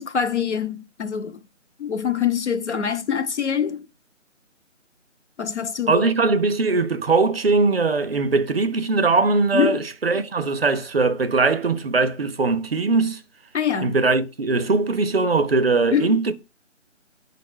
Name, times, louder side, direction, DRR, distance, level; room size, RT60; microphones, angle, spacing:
voice 1, 0.0-1.4 1.8-3.9 5.4-6.0 9.5-9.8 13.5-14.0 15.9-16.1, left 7 dB, 65° left, 0.5 m, -24 dB
voice 2, 5.9-13.2 13.8-16.3, right 3 dB, 50° right, 0.5 m, -20 dB
5.4 x 2.0 x 3.5 m
figure-of-eight pair, 160°, 38 cm